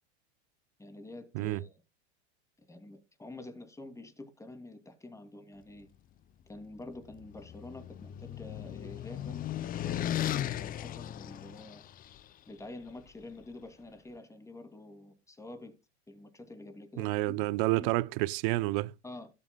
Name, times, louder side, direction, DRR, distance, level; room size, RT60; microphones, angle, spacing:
voice 1, 0.8-1.7 2.6-5.9 6.5-11.8 12.5-15.7 16.1-17.5 17.7-17.9 19.0-19.3, left 2 dB, 10° left, 2.8 m, -47 dB
sound 1, 6.9-12.2, left 12 dB, 25° left, 0.6 m, -36 dB
voice 2, 17.0-18.9, right 19 dB, 55° right, 0.8 m, -29 dB
18.0 x 7.1 x 2.3 m
hypercardioid pair, 110°, 33 cm